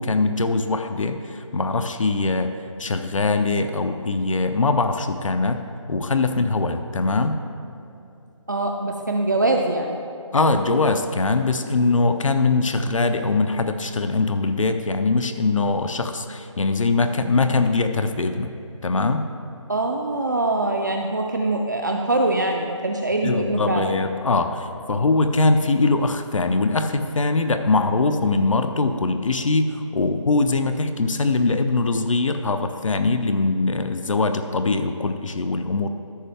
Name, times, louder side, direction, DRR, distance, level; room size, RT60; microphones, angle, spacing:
voice 1, 0.0-7.4 10.3-18.5 18.8-19.3 23.2-35.9, left 3 dB, 80° left, 7 dB, 0.7 m, -22 dB
voice 2, 8.5-10.0 19.7-24.0, right 2 dB, 35° right, 2 dB, 0.4 m, -23 dB
13.5 x 5.6 x 3.4 m, 2.8 s
figure-of-eight pair, 175°, 16 cm